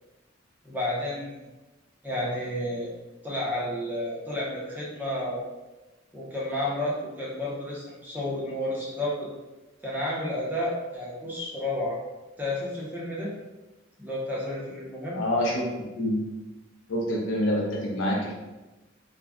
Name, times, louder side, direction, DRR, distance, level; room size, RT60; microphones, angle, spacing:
voice 1, 0.6-1.4 2.0-2.9 3.2-5.4 6.1-9.3 9.8-12.0 12.4-13.3 14.0-15.2, left 1 dB, 10° right, -6 dB, 0.6 m, -31 dB
voice 2, 15.1-15.6 15.9-16.2 16.9-18.3, left 1 dB, 65° left, -3 dB, 0.7 m, -26 dB
2.4 x 2.1 x 3.5 m, 1.1 s
head